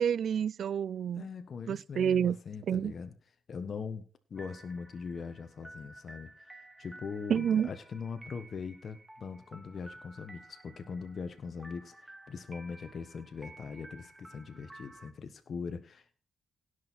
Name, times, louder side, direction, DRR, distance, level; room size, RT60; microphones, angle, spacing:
voice 1, 0.0-1.2 1.7-2.4 2.7-2.9 7.3-7.7, right 8 dB, 70° right, 0.4 m, -28 dB
voice 2, 1.2-3.1 3.5-16.2, left 5 dB, 60° left, 1.2 m, -41 dB
sound 1, 4.4-15.1, right 1 dB, 15° right, 2.3 m, -53 dB
17.0 x 6.5 x 4.2 m
cardioid pair, 60°, 0 cm